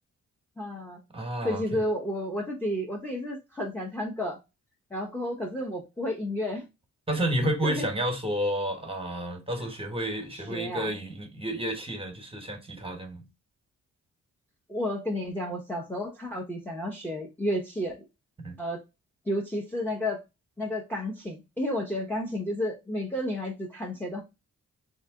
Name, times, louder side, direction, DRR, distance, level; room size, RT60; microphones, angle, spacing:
voice 1, 0.6-1.0 1.4-4.4 4.9-6.7 7.6-7.9 10.3-10.9 14.7-18.0 18.6-18.8 19.3-20.2 20.6-24.2, left 1 dB, 5° left, 0.7 m, -31 dB
voice 2, 1.1-1.8 7.1-13.2 18.4-18.6, right 1 dB, 15° right, 1.1 m, -31 dB
3.2 x 2.8 x 3.5 m
cardioid pair, 60°, 33 cm